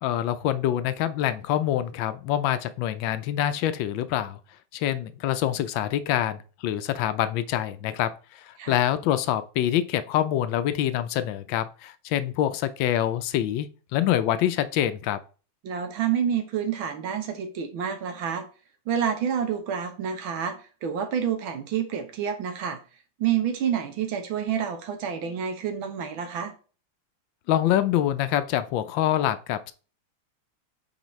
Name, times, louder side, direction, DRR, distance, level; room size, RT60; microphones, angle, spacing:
voice 1, 0.0-4.4 4.7-15.2 27.5-29.7, left 12 dB, 75° left, 12 dB, 1.3 m, -25 dB
voice 2, 15.6-18.4 18.9-22.8 23.2-26.5, right 8 dB, 75° right, 6 dB, 1.8 m, -28 dB
8.0 x 4.3 x 3.1 m, 0.37 s
omnidirectional pair, 2.3 m